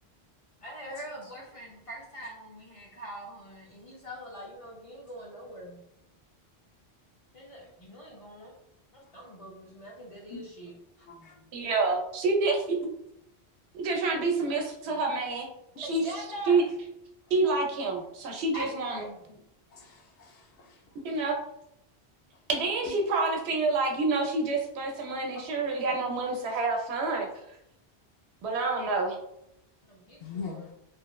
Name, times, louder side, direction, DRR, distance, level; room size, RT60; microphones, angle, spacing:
voice 1, 0.6-5.8 7.3-8.5 8.9-11.4 15.8-16.6 18.5-19.2 29.8-30.7, right 1 dB, 55° left, -4 dB, 0.4 m, -43 dB
voice 2, 11.5-12.9 13.7-15.5 15.8-16.0 16.5-16.6 17.3-19.0 21.0-21.4 22.5-27.3 28.4-29.2, right 3 dB, 80° right, 2 dB, 0.8 m, -28 dB
voice 3, 19.7-20.8 25.3-25.4 30.2-30.7, left 5 dB, 90° left, 1 dB, 0.9 m, -42 dB
3.0 x 2.0 x 2.2 m, 0.80 s
omnidirectional pair, 1.1 m